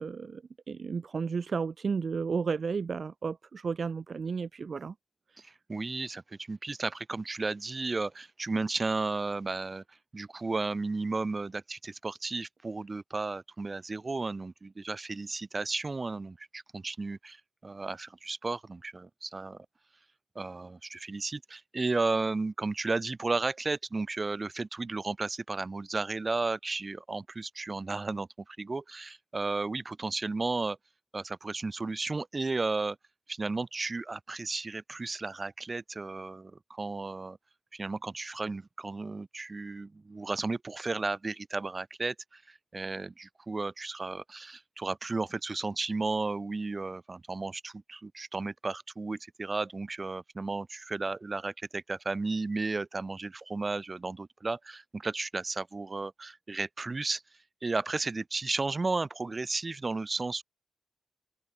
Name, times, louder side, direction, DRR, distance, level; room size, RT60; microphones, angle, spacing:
voice 1, 0.0-4.9, right 5 dB, 50° right, 0.6 m, -33 dB
voice 2, 5.4-9.8 10.1-19.7 20.3-30.8 31.1-33.0 33.3-37.4 37.7-57.2 57.6-60.4, right 3 dB, 30° right, 1.3 m, -34 dB
open air
wide cardioid pair, 110°, 0 cm